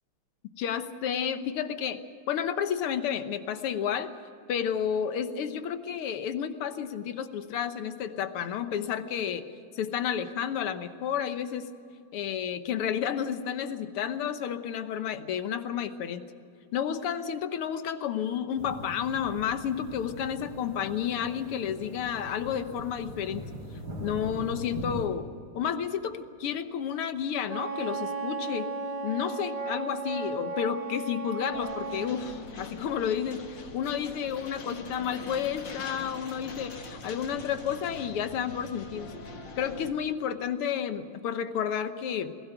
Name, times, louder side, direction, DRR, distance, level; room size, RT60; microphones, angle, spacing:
voice 1, 0.6-2.0 2.3-4.1 4.5-9.5 9.7-11.7 12.1-16.3 16.7-23.5 24.0-25.3 25.5-28.7 29.0-39.1 39.6-42.3, left 8 dB, 85° left, 10 dB, 2.0 m, -31 dB
sound 1, 18.6-25.1, equal, 65° right, 4.2 m, -41 dB
Wind instrument woodwind instrument, 27.5-32.1, right 3 dB, 20° left, 1.4 m, -35 dB
sound 2, 31.5-39.9, left 3 dB, 55° left, 2.4 m, -43 dB
21.5 x 16.5 x 8.0 m, 2.5 s
omnidirectional pair, 2.4 m